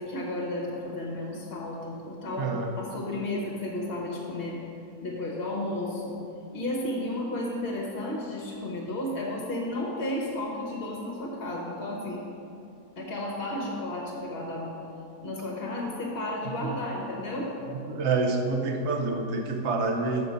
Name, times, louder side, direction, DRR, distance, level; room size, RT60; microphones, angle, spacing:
voice 1, 0.0-4.6 5.0-6.2 6.5-12.2 13.0-14.7 15.2-17.5, left 1 dB, 45° left, -2 dB, 1.2 m, -33 dB
voice 2, 2.4-2.7 16.6-16.7 17.9-20.3, right 3 dB, 55° right, 4 dB, 0.9 m, -27 dB
6.9 x 6.0 x 5.1 m, 2.8 s
omnidirectional pair, 1.6 m